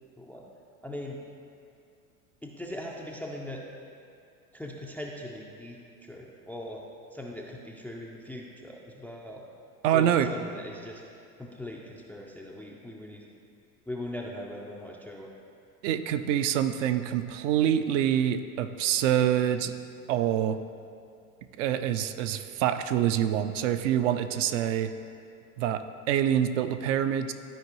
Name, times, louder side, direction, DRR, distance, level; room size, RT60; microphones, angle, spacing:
voice 1, 0.8-1.2 2.4-3.6 4.5-6.8 7.1-9.4 9.9-11.0 11.4-13.2 13.9-15.3, left 1 dB, 5° left, -1 dB, 0.3 m, -40 dB
voice 2, 9.8-10.3 15.8-19.7 20.1-20.6 21.6-24.9 25.6-27.3, right 10 dB, 55° right, 9 dB, 0.5 m, -26 dB
12.5 x 4.6 x 3.0 m, 2.4 s
hypercardioid pair, 80°, 46 cm